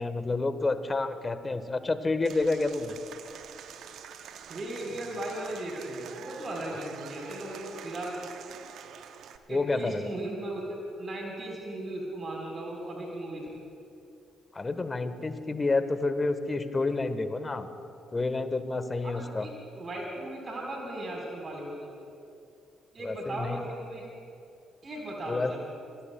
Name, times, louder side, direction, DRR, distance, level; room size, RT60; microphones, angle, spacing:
voice 1, 0.0-3.0 9.5-10.1 14.5-17.7 18.1-19.5 23.0-23.6 25.3-25.5, left 3 dB, 30° left, 10 dB, 1.3 m, -29 dB
Applause / Crowd, 2.2-9.4, right 8 dB, 65° right, 0.8 m, -46 dB
voice 2, 4.5-8.2 9.5-13.5 19.0-19.5 19.8-21.9 22.9-24.0 24.8-25.6, right 1 dB, 45° right, -1 dB, 4.3 m, -37 dB
26.5 x 22.0 x 2.3 m, 2.6 s
hypercardioid pair, 45°, 0 cm